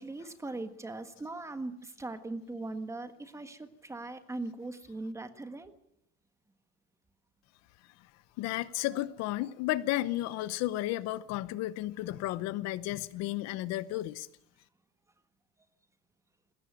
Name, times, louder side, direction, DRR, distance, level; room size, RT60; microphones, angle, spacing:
voice 1, 0.0-5.7, right 2 dB, 10° right, 9 dB, 1.5 m, -40 dB
voice 2, 8.4-14.3, left 15 dB, 60° left, 16 dB, 0.9 m, -33 dB
21.0 x 17.5 x 9.0 m, 0.72 s
cardioid pair, 160°, 30 cm